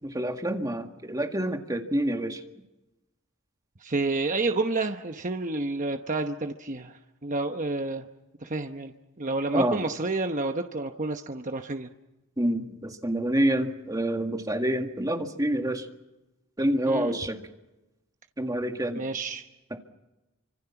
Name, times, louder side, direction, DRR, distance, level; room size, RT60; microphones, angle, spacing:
voice 1, 0.0-2.4 9.5-9.8 12.4-15.9 16.6-17.4 18.4-19.0 19.7-19.8, right 1 dB, 20° right, 4 dB, 2.0 m, -27 dB
voice 2, 3.8-8.1 8.4-11.9 16.9-17.1 18.9-19.4, right 3 dB, 40° right, 5 dB, 1.0 m, -30 dB
28.5 x 26.0 x 5.9 m, 0.98 s
head